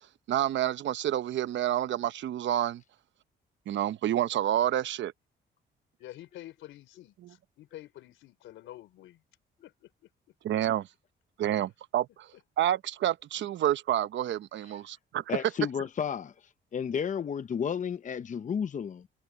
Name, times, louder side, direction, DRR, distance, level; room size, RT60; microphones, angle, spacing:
voice 1, 0.3-2.8 3.7-5.1 7.2-7.3 10.4-10.9 11.4-12.3 12.6-15.2, right 12 dB, 70° right, 0.9 m, -29 dB
voice 2, 6.0-9.2 9.6-10.1 12.6-12.7, left 14 dB, 85° left, 3.8 m, -48 dB
voice 3, 15.3-16.3 16.7-19.1, left 7 dB, 40° left, 0.7 m, -32 dB
cardioid pair, 90°, 20 cm